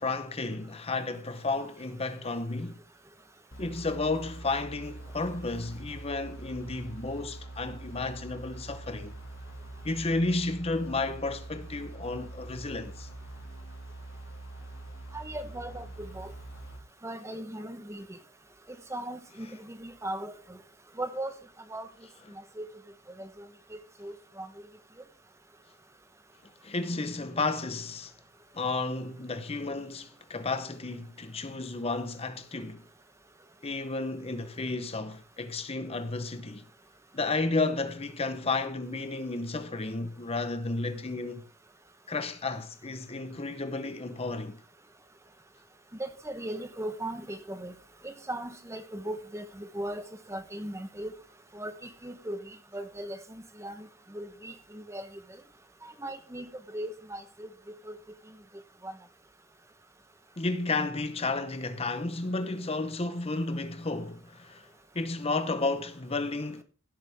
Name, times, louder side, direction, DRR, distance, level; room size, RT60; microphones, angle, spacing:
voice 1, 0.0-2.8 3.6-9.1 9.8-13.1 19.4-19.5 26.6-28.1 28.5-32.8 33.6-36.6 37.1-41.4 42.1-44.6 60.4-64.7 64.9-66.6, left 3 dB, 25° left, 0.8 m, -32 dB
sound 1, 3.5-16.8, right 2 dB, 60° left, 2.3 m, -44 dB
voice 2, 15.1-16.3 17.0-18.2 18.7-20.6 21.0-21.3 21.7-21.9 22.6-22.7 23.2-24.7 46.0-47.7 48.0-50.0 50.3-51.1 51.5-55.1 55.8-57.9 58.8-58.9, right 1 dB, 15° right, 0.9 m, -38 dB
16.5 x 8.1 x 3.5 m
head